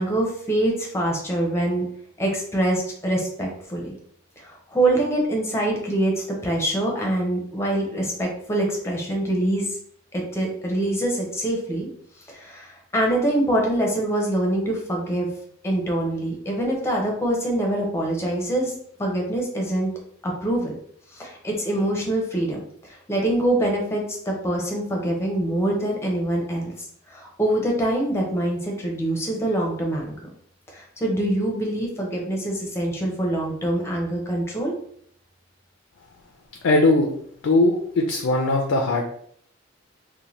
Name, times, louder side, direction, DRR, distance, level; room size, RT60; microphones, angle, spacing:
voice 1, 0.0-1.9 2.2-4.0 4.4-9.6 10.1-11.9 12.3-15.3 15.6-18.7 19.0-19.9 20.2-20.7 21.1-30.1 30.7-34.7, right 1 dB, 15° left, -1 dB, 0.5 m, -24 dB
voice 2, 36.6-37.1 37.4-39.0, left 2 dB, 70° left, 2 dB, 0.4 m, -19 dB
2.7 x 2.1 x 3.0 m, 0.64 s
head